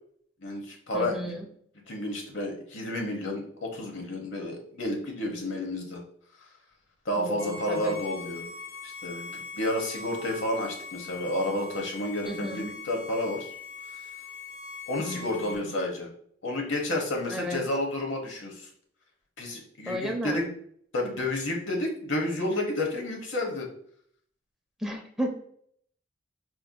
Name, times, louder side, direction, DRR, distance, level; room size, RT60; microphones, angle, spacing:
voice 1, 0.4-1.3 1.9-6.0 7.0-8.5 8.8-13.5 14.9-16.1 16.4-18.7 19.4-20.4 20.9-23.7, left 1 dB, 90° left, 1 dB, 1.0 m, -31 dB
voice 2, 0.9-1.4 7.2-8.0 12.2-12.7 15.0-15.7 17.3-17.6 19.9-20.5 24.8-25.4, equal, 5° right, 1 dB, 0.5 m, -33 dB
Bowed string instrument, 7.4-15.6, left 4 dB, 40° left, 1.3 m, -42 dB
4.4 x 2.6 x 2.2 m, 0.63 s
head